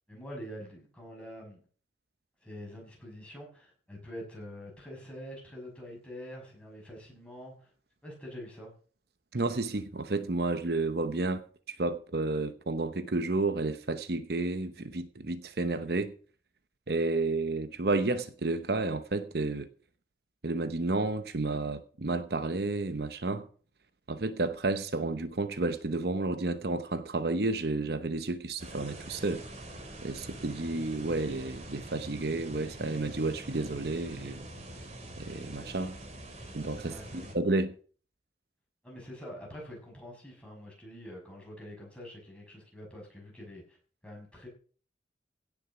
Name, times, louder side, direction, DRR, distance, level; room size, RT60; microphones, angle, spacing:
voice 1, 0.1-1.6 2.4-7.7 8.0-8.7 36.9-37.3 38.8-43.8 44.0-44.5, equal, 5° left, 5.9 m, -45 dB
voice 2, 9.3-16.1 16.9-19.7 20.4-23.5 24.1-29.5 30.0-34.5 35.2-35.9 36.5-37.7, right 2 dB, 60° right, 0.9 m, -31 dB
sound 1, 28.6-37.3, right 1 dB, 40° right, 2.9 m, -45 dB
16.5 x 7.2 x 6.0 m
head